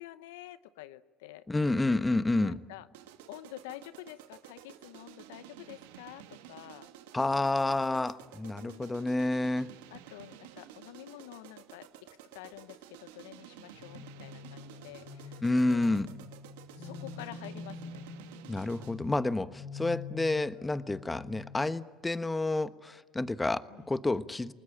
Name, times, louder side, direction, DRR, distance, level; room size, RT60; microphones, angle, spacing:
voice 1, 0.0-1.5 2.4-2.9 3.3-6.9 8.6-8.9 9.9-11.9 12.3-15.4 15.7-16.0 16.8-18.0 23.7-23.9, left 15 dB, 80° left, 15 dB, 0.7 m, -48 dB
voice 2, 1.5-2.6 7.1-9.7 15.4-16.1 18.5-24.5, left 2 dB, 15° left, 12 dB, 1.2 m, -29 dB
sound 1, 2.9-19.1, right 11 dB, 80° right, 1.6 m, -52 dB
sound 2, 13.7-22.1, left 5 dB, 60° left, 3.8 m, -46 dB
29.0 x 20.0 x 8.9 m, 1.3 s
hypercardioid pair, 75°, 0 cm